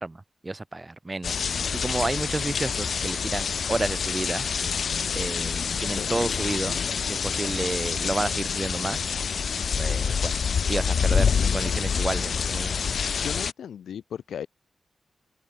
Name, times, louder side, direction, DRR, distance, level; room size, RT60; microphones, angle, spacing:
voice 1, 0.0-4.5 5.1-9.0 9.8-10.3 10.7-12.7, right 2 dB, 30° right, 1.3 m, -31 dB
sound 1, 1.2-13.5, left 6 dB, 70° left, 0.6 m, -27 dB
voice 2, 13.2-14.5, left 8 dB, 90° left, 8.0 m, -36 dB
open air
cardioid pair, 50°, 0 cm